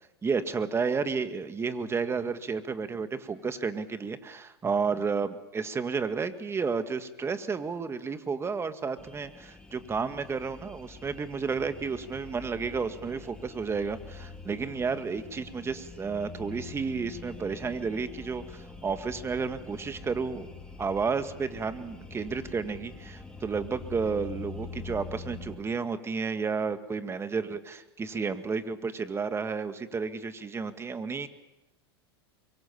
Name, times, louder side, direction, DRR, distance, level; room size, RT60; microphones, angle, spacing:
voice 1, 0.2-20.5 20.8-31.3, right 5 dB, 20° right, 10 dB, 1.9 m, -32 dB
sound 1, 9.0-25.6, left 3 dB, 5° left, 4.1 m, -45 dB
24.5 x 23.5 x 7.1 m, 0.96 s
hypercardioid pair, 100°, 14 cm